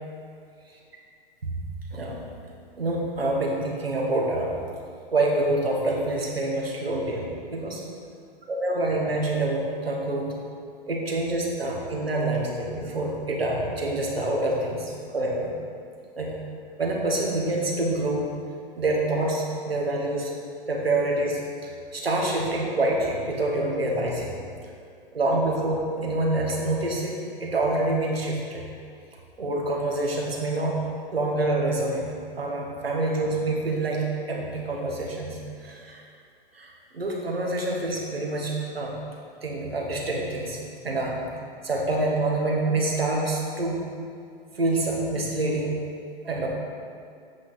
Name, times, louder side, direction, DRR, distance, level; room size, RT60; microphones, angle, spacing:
voice 1, 1.9-2.2 2.8-4.5 5.1-7.8 8.5-10.4 10.9-15.6 16.2-16.3 16.8-18.3 18.8-20.3 20.7-24.3 25.1-27.1 27.4-28.6 29.4-30.8 31.1-32.1 32.4-36.0 36.5-38.9 39.4-40.6 40.8-41.2 41.6-43.8 44.5-45.8 46.2-46.5, right 2 dB, 90° right, -2 dB, 1.6 m, -26 dB
8.5 x 6.2 x 4.0 m, 2.3 s
hypercardioid pair, 110°, 29 cm